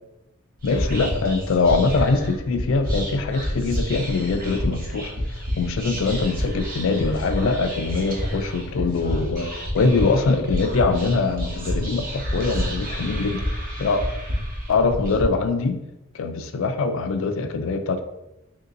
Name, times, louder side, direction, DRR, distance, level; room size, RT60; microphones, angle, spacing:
voice 1, 0.6-14.0 14.7-15.8 16.1-18.0, left 3 dB, 65° left, 7 dB, 0.4 m, -23 dB
Whispering, 0.6-15.2, equal, 45° right, 0.9 m, -29 dB
3.0 x 2.7 x 3.7 m, 0.94 s
head